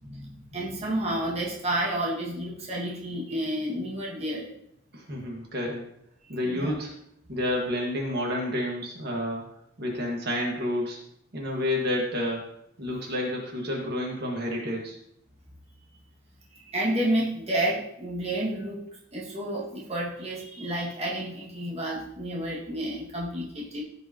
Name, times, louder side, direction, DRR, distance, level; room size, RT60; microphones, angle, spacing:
voice 1, 0.0-4.5 6.4-6.7 16.5-18.9 19.1-23.8, right 1 dB, 35° right, -4 dB, 1.9 m, -30 dB
voice 2, 4.9-5.8 6.3-6.9 7.3-9.4 9.8-11.0 11.3-12.4 12.8-15.0, left 1 dB, 55° right, -2 dB, 1.7 m, -29 dB
15.5 x 5.3 x 2.9 m, 0.73 s
head